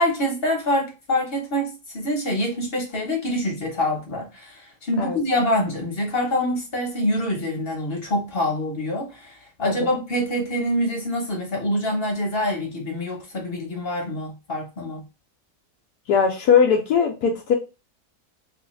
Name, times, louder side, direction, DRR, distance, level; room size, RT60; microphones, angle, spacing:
voice 1, 0.0-15.0, left 1 dB, 40° left, 1.1 m, -25 dB
voice 2, 16.1-17.5, left 6 dB, 80° left, 1.1 m, -20 dB
3.3 x 2.7 x 3.1 m
omnidirectional pair, 1.7 m